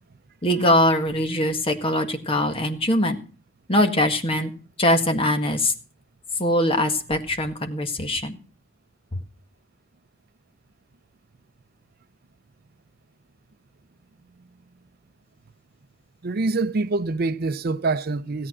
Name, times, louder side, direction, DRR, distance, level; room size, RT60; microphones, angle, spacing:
voice 1, 0.4-3.2 3.7-4.5 4.8-5.7 6.4-8.4, left 1 dB, 30° left, 1.8 m, -22 dB
voice 2, 16.2-18.5, right 3 dB, 50° right, 0.6 m, -25 dB
17.0 x 8.6 x 6.0 m
head